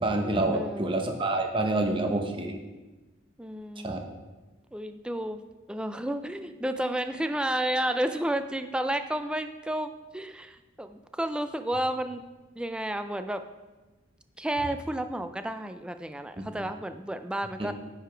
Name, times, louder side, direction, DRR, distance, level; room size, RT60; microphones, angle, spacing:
voice 1, 0.0-2.6 3.8-4.0 16.4-16.5 17.6-17.7, right 2 dB, 25° right, 4 dB, 0.8 m, -27 dB
voice 2, 0.5-1.0 3.4-3.9 4.7-5.4 5.7-12.2 12.6-13.4 14.4-17.7, right 1 dB, 5° right, 9 dB, 0.3 m, -31 dB
9.7 x 4.9 x 4.5 m, 1.2 s
head